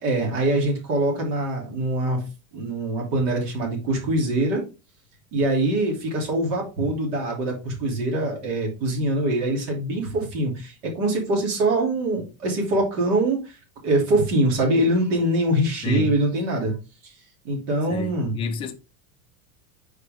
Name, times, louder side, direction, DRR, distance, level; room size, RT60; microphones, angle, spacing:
voice 1, 0.0-2.2 2.5-4.6 5.3-13.6 13.8-16.7 17.0-17.1 17.4-18.3, right 1 dB, 60° right, 2.8 m, -23 dB
voice 2, 15.8-16.2 17.9-18.7, left 5 dB, 15° left, 0.4 m, -29 dB
6.6 x 4.9 x 3.5 m
supercardioid pair, 170°, 41 cm